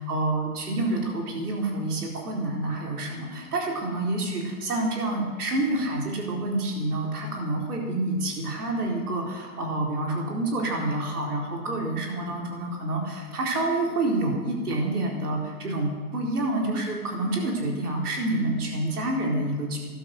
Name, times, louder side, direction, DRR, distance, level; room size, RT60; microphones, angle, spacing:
voice 1, 0.0-19.8, right 2 dB, 75° right, 0 dB, 4.2 m, -28 dB
12.5 x 11.5 x 6.6 m, 1.5 s
hypercardioid pair, 160°, 46 cm